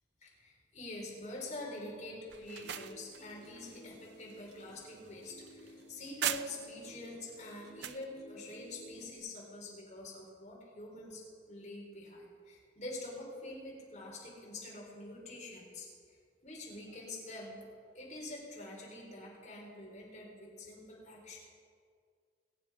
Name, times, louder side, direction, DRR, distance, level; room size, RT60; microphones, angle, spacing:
voice 1, 0.2-15.9 16.4-17.6 17.9-21.4, left 2 dB, 40° left, -3 dB, 3.9 m, -46 dB
sound 1, 2.3-6.9 7.3-8.1, right 11 dB, 75° right, 0.4 m, -41 dB
sound 2, 2.6-9.2, left 1 dB, 60° left, 4.4 m, -56 dB
22.0 x 8.7 x 4.8 m, 2.2 s
head